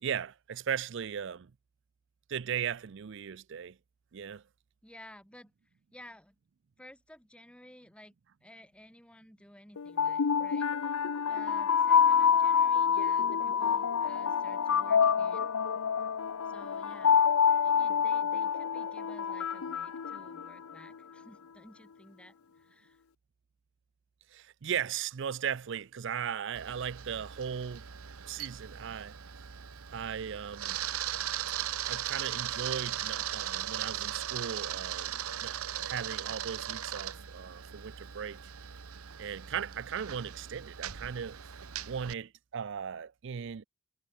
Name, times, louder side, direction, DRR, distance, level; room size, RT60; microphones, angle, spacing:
voice 1, 0.0-1.5 2.3-3.8 4.1-4.4 24.3-27.9 28.3-29.1 29.9-30.8 31.9-35.6 35.8-38.4 39.2-43.6, right 8 dB, 55° right, 0.4 m, -37 dB
voice 2, 4.8-5.5 5.9-6.4 6.8-8.1 8.4-11.0 11.2-15.5 16.4-17.2 17.6-23.0, left 1 dB, 5° left, 5.0 m, -54 dB
sound 1, 9.8-20.8, left 7 dB, 85° left, 0.6 m, -27 dB
Camera, 26.5-42.1, right 11 dB, 90° right, 0.9 m, -38 dB
head